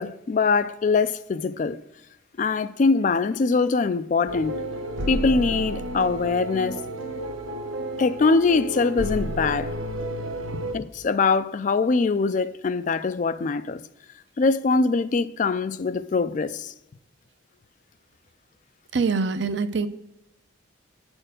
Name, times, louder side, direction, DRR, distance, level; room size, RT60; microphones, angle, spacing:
voice 1, 0.0-1.8 2.4-4.6 5.1-6.8 8.0-9.7 10.7-13.8 14.4-16.7, left 4 dB, 40° left, 0.3 m, -23 dB
sound 1, 4.3-10.8, equal, 80° right, 1.0 m, -31 dB
voice 2, 18.9-19.9, right 4 dB, 60° right, 0.5 m, -24 dB
8.7 x 4.4 x 6.4 m
head